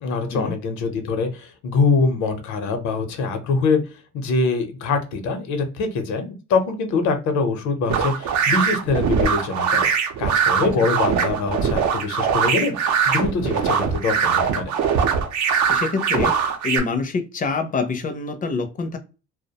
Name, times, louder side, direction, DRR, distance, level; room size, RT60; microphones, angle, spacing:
voice 1, 0.0-3.8 4.1-9.8 10.2-14.7, left 4 dB, 80° left, 6 dB, 0.7 m, -23 dB
sound 1, 7.9-16.8, right 6 dB, 75° right, 0.6 m, -21 dB
voice 2, 15.7-16.4 16.6-19.0, left 4 dB, 30° left, 7 dB, 0.4 m, -25 dB
2.3 x 2.1 x 2.7 m, 0.32 s
cardioid pair, 125°, 29 cm